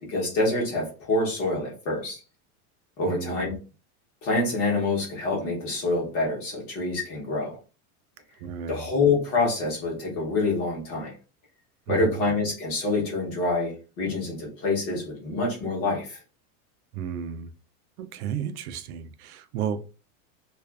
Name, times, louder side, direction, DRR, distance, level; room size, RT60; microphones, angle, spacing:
voice 1, 0.1-2.2 3.0-3.5 4.2-7.6 8.7-11.1 11.9-16.2, left 3 dB, 30° left, 0.9 m, -26 dB
voice 2, 3.1-3.6 8.4-8.9 11.9-12.2 16.9-17.5 18.0-19.8, right 8 dB, 80° right, 0.5 m, -33 dB
2.4 x 2.4 x 2.3 m
supercardioid pair, 175°, 44 cm